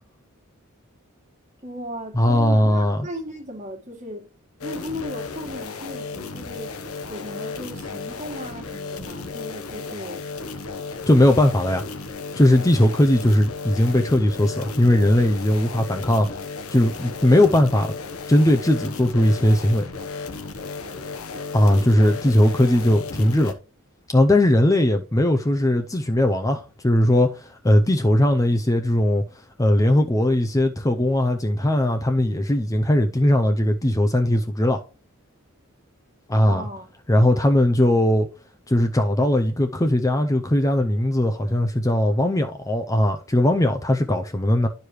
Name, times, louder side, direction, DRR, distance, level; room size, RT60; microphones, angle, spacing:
voice 1, 1.6-4.2 4.6-6.8 7.1-10.2 36.4-36.9, equal, 35° right, 1.7 m, -36 dB
voice 2, 2.1-3.1 11.1-11.8 12.4-16.3 16.7-18.0 18.3-19.9 21.5-23.5 24.1-29.2 29.6-34.8 36.3-36.6 37.1-38.3 38.7-44.7, left 1 dB, 15° left, 0.5 m, -19 dB
sound 1, 4.6-23.5, left 4 dB, 80° left, 1.1 m, -34 dB
11.5 x 4.8 x 3.1 m
head